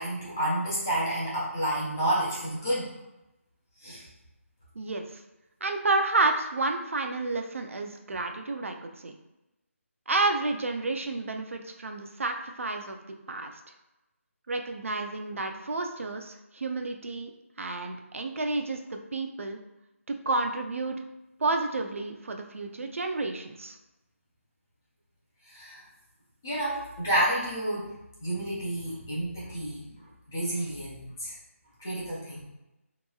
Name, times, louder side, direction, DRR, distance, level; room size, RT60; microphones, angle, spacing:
voice 1, 0.0-2.9 3.8-4.0 25.5-25.8 26.4-27.9 28.2-29.8 30.3-31.3 31.8-32.4, right 1 dB, 10° left, -7 dB, 0.4 m, -30 dB
voice 2, 4.8-5.2 5.6-9.1 10.1-13.0 13.3-13.5 14.5-17.3 17.6-19.6 20.1-21.0 21.4-23.8, right 3 dB, 65° right, 4 dB, 0.4 m, -30 dB
3.6 x 2.9 x 2.3 m, 0.96 s
figure-of-eight pair, 175°, 8 cm